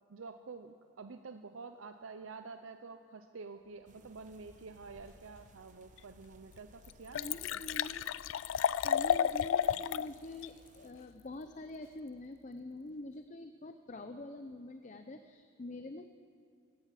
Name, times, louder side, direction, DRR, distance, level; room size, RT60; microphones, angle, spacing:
voice 1, 0.1-7.6, right 4 dB, 90° right, 8 dB, 0.6 m, -49 dB
sound 1, 3.9-10.9, right 2 dB, 40° right, 1.0 m, -63 dB
Liquid, 6.0-6.1 6.5-6.6 6.8-10.1 10.4-10.5, left 9 dB, 80° left, 0.3 m, -32 dB
voice 2, 7.1-8.0 8.8-16.1, left 2 dB, 40° left, 8 dB, 0.6 m, -45 dB
17.5 x 11.5 x 7.5 m, 2.4 s
head